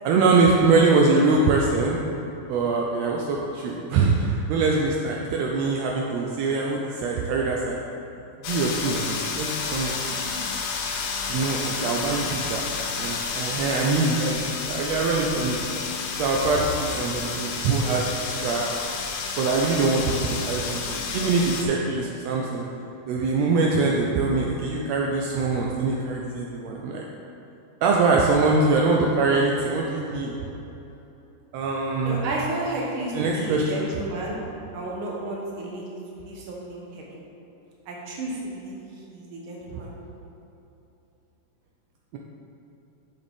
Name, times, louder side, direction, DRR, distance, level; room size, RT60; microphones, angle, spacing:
voice 1, 0.0-2.0 2.5-7.8 8.5-10.4 11.3-14.4 14.7-15.6 15.9-18.8 19.3-22.6 23.1-27.0 27.8-30.3 31.5-32.2 33.1-33.8 39.7-39.8, right 3 dB, 85° right, -1 dB, 1.5 m, -23 dB
sound 1, 8.4-21.6, left 5 dB, 85° left, 2.2 m, -30 dB
voice 2, 32.0-34.4 34.7-37.0 37.9-38.8 39.1-39.9, right 2 dB, 60° right, -3 dB, 1.5 m, -32 dB
7.9 x 6.7 x 3.5 m, 3.0 s
omnidirectional pair, 3.6 m